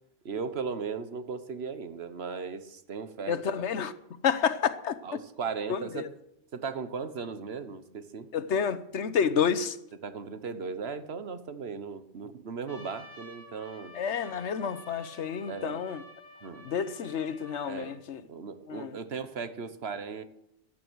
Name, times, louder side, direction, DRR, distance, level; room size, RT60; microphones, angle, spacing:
voice 1, 0.2-3.4 5.0-6.1 6.5-8.3 10.0-13.9 15.5-15.8 16.4-16.6 17.6-18.0 18.3-20.2, right 5 dB, 65° right, 1.4 m, -37 dB
voice 2, 3.3-3.9 4.2-5.2 5.7-6.1 8.3-9.8 13.9-16.0 16.6-18.2 18.7-19.0, left 7 dB, 90° left, 1.2 m, -29 dB
Trumpet, 12.7-18.0, left 1 dB, 55° left, 2.6 m, -50 dB
16.0 x 11.5 x 6.3 m
omnidirectional pair, 1.1 m